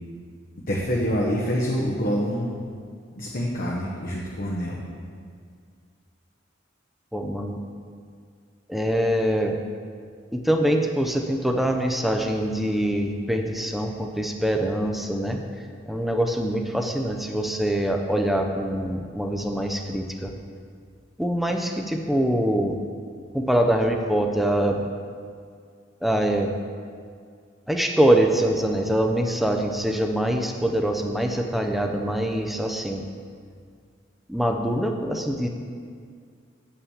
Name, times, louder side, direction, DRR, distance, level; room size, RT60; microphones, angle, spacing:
voice 1, 0.7-2.5 3.1-4.8, equal, 50° left, -3 dB, 1.0 m, -26 dB
voice 2, 7.1-7.6 8.7-9.5 10.3-15.4 15.9-20.3 21.2-22.7 23.3-24.9 26.0-26.5 27.7-33.0 34.3-35.5, right 1 dB, ahead, 3 dB, 0.6 m, -24 dB
8.1 x 5.8 x 7.2 m, 2.1 s
head